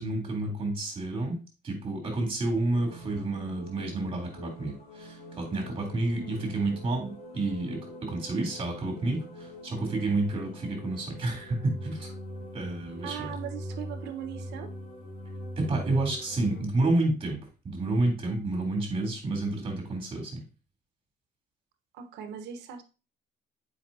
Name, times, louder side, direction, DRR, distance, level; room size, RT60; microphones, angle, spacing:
voice 1, 0.0-1.4 1.6-12.1 12.5-13.3 15.6-17.4 17.6-20.3, right 2 dB, 30° right, 1 dB, 3.3 m, -30 dB
sound 1, 2.7-16.6, equal, 80° left, 2.7 m, -43 dB
voice 2, 13.0-14.7 21.9-22.8, right 9 dB, 85° right, 8 dB, 1.1 m, -39 dB
7.5 x 5.2 x 2.7 m, 0.31 s
cardioid pair, 110°, 17 cm